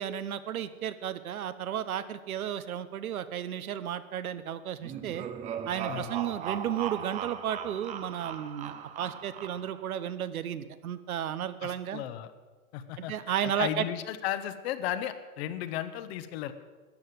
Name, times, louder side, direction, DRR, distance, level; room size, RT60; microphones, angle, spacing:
voice 1, 0.0-5.3 5.7-12.0 13.0-13.9, right 10 dB, 75° right, 13 dB, 1.1 m, -33 dB
sound 1, 4.8-9.9, right 8 dB, 15° right, 0.6 m, -38 dB
voice 2, 11.6-12.3 12.7-13.1 13.4-16.5, left 11 dB, 45° left, 11 dB, 1.1 m, -34 dB
13.0 x 9.1 x 7.9 m, 1.3 s
hypercardioid pair, 130°, 43 cm